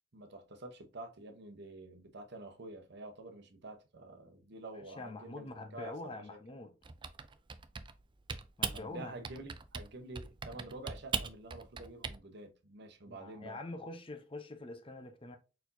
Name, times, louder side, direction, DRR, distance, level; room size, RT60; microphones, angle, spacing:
voice 1, 0.1-6.4 8.7-13.6, right 2 dB, 60° right, 0.9 m, -48 dB
voice 2, 5.0-6.7 8.6-9.1 13.1-15.4, left 2 dB, 30° left, 0.7 m, -45 dB
Typing, 6.8-8.0 8.3-8.8 9.2-9.9 10.2-12.2, right 6 dB, 25° right, 0.4 m, -39 dB
4.4 x 4.4 x 2.7 m
head